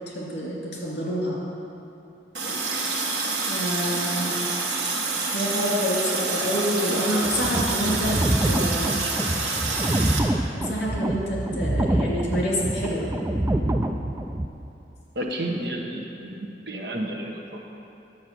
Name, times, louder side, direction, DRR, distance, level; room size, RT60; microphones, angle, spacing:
voice 1, 0.0-1.4 3.5-4.4 5.3-8.2 8.5-9.0 10.5-13.1, equal, 65° left, -4 dB, 2.9 m, -27 dB
Water tap faucet, 2.3-10.2, right 3 dB, 80° right, 1.5 m, -27 dB
sound 1, 7.2-14.5, right 1 dB, 15° right, 0.4 m, -26 dB
voice 2, 15.1-16.3 16.7-17.6, right 1 dB, 65° right, 1 dB, 1.2 m, -31 dB
9.6 x 8.4 x 6.1 m, 2.9 s
head